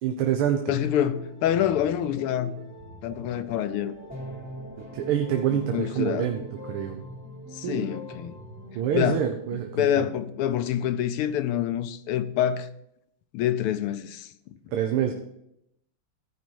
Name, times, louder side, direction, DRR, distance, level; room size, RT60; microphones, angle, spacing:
voice 1, 0.0-0.7 4.8-7.0 7.6-7.9 8.7-10.1 14.7-15.1, right 9 dB, 80° right, 1.7 m, -27 dB
voice 2, 0.7-2.6 3.0-3.9 5.5-6.3 7.5-8.4 8.9-9.2 9.5-12.7 13.3-14.3, left 10 dB, 90° left, 1.6 m, -26 dB
sound 1, 0.7-9.1, equal, 5° right, 3.1 m, -42 dB
15.0 x 5.2 x 4.6 m
omnidirectional pair, 2.4 m